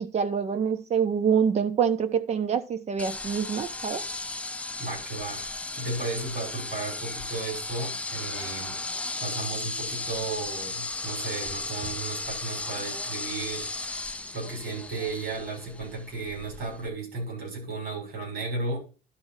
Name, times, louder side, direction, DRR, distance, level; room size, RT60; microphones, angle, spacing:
voice 1, 0.0-4.0, right 7 dB, 45° right, 9 dB, 0.9 m, -26 dB
sound 1, 3.0-16.9, left 2 dB, 10° left, 0.4 m, -35 dB
voice 2, 4.8-8.8 9.2-18.8, right 3 dB, 90° right, 0 dB, 6.4 m, -34 dB
11.5 x 4.3 x 5.7 m, 0.34 s
cardioid pair, 150°, 16 cm